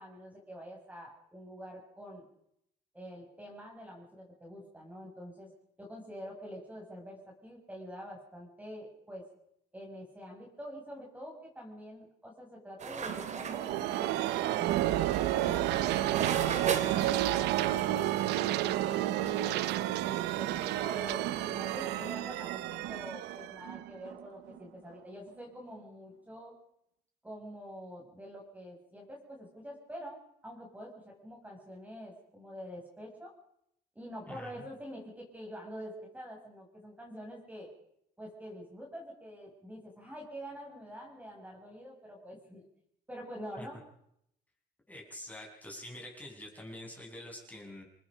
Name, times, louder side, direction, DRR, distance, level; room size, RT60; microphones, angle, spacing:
voice 1, 0.0-2.2 2.9-5.5 5.8-9.3 9.7-14.7 20.4-26.5 27.2-33.3 34.0-37.7 38.2-42.6 43.1-43.8, equal, 10° right, -1 dB, 7.0 m, -46 dB
sound 1, 12.8-22.1, right 6 dB, 45° right, 3.1 m, -40 dB
sound 2, 13.1-24.6, right 14 dB, 85° right, 0.9 m, -31 dB
voice 2, 44.9-47.8, left 1 dB, 10° left, 0 dB, 7.6 m, -46 dB
28.5 x 20.0 x 5.2 m, 0.73 s
cardioid pair, 110°, 17 cm